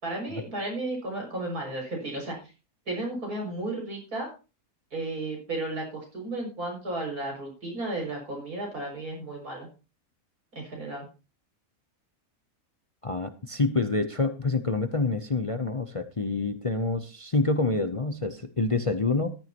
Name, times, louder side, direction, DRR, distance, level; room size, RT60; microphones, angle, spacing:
voice 1, 0.0-2.5 2.9-4.3 4.9-9.7 10.5-11.1, right 2 dB, 90° right, 0 dB, 6.8 m, -33 dB
voice 2, 13.0-19.4, left 3 dB, 30° left, 8 dB, 0.6 m, -27 dB
14.5 x 13.0 x 3.0 m, 0.32 s
omnidirectional pair, 1.5 m